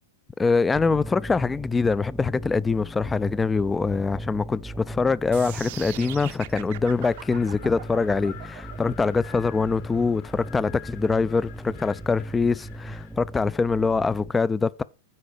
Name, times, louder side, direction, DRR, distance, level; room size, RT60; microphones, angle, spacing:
voice 1, 0.4-14.8, left 4 dB, 15° left, 0.4 m, -24 dB
sound 1, 0.7-14.3, right 1 dB, 5° right, 0.8 m, -38 dB
sound 2, 5.3-11.4, right 15 dB, 60° right, 0.7 m, -41 dB
Wind, 6.8-13.2, left 10 dB, 55° left, 1.7 m, -48 dB
8.5 x 4.9 x 6.5 m
hypercardioid pair, 115°, 0 cm